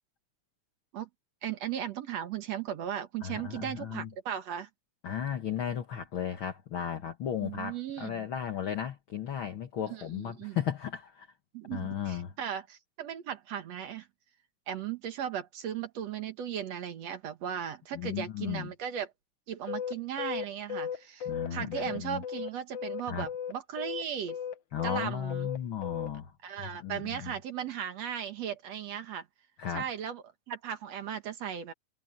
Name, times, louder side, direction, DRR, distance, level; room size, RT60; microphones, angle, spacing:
voice 1, 1.4-4.7 7.4-8.3 9.9-10.6 11.5-14.1 14.7-19.1 19.5-24.4 24.8-25.5 26.4-29.3 29.7-31.7, right 9 dB, 60° right, 2.3 m, -37 dB
voice 2, 3.2-4.1 5.0-11.3 11.7-12.3 17.9-18.7 21.2-22.2 23.1-23.3 24.7-26.3 26.6-27.3 29.6-29.9, left 9 dB, 50° left, 1.7 m, -35 dB
sound 1, 19.7-23.0 23.3-26.1, left 8 dB, 85° left, 1.0 m, -36 dB
omnidirectional pair, 3.6 m